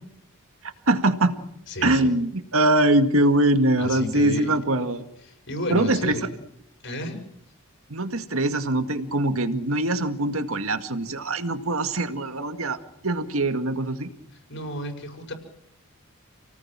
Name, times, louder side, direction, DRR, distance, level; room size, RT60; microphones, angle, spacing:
voice 1, 0.6-1.3 1.8-5.1 5.7-6.1 7.9-14.1, right 1 dB, 65° right, 8 dB, 2.1 m, -23 dB
voice 2, 1.7-2.1 3.8-4.5 5.2-6.3 6.8-7.2 14.5-15.3, left 1 dB, 55° left, 5 dB, 6.7 m, -32 dB
30.0 x 18.5 x 7.6 m, 0.78 s
head